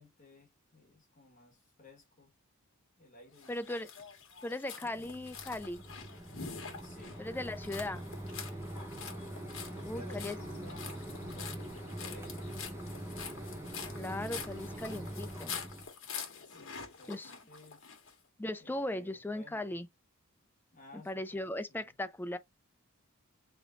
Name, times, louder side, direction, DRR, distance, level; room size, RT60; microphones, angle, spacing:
voice 1, 0.0-2.3 3.0-3.7 4.8-5.1 6.8-7.2 8.7-12.6 16.4-17.9 18.6-19.8 20.7-21.9, left 2 dB, 35° left, 1.6 m, -56 dB
sound 1, 3.4-18.1, left 6 dB, 60° left, 1.4 m, -46 dB
voice 2, 3.5-3.9 4.4-5.8 7.2-8.1 9.9-10.4 14.0-15.6 17.1-17.3 18.4-19.9 21.0-22.4, left 1 dB, 10° left, 0.3 m, -38 dB
Mechanisms, 4.9-15.9, right 1 dB, 10° right, 1.0 m, -43 dB
3.7 x 3.4 x 3.7 m
head